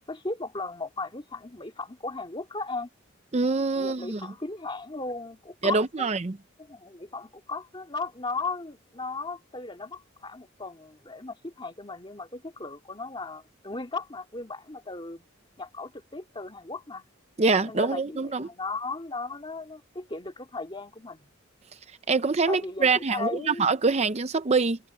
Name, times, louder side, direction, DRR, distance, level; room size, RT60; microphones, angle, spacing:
voice 1, 0.1-2.9 3.7-6.1 6.6-15.2 15.6-17.0 17.7-21.3 22.5-23.6, left 3 dB, 25° left, 2.5 m, -36 dB
voice 2, 3.3-4.2 5.6-6.4 17.4-18.5 22.1-24.8, right 4 dB, 30° right, 0.6 m, -24 dB
head